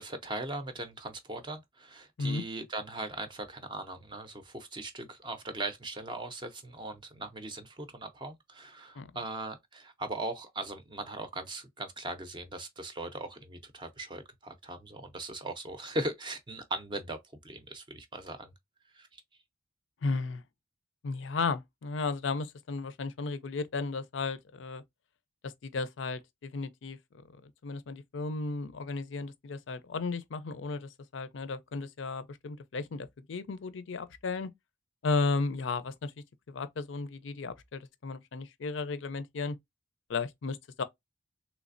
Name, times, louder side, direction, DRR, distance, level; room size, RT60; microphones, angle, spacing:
voice 1, 0.0-17.2 17.4-18.5 18.9-19.2, right 2 dB, 25° right, 0.5 m, -39 dB
voice 2, 20.0-20.4 21.0-24.8 25.4-27.0 27.3-34.5 35.0-36.1 36.5-39.6 40.1-40.8, left 4 dB, 65° left, 0.5 m, -34 dB
3.3 x 3.1 x 2.5 m
head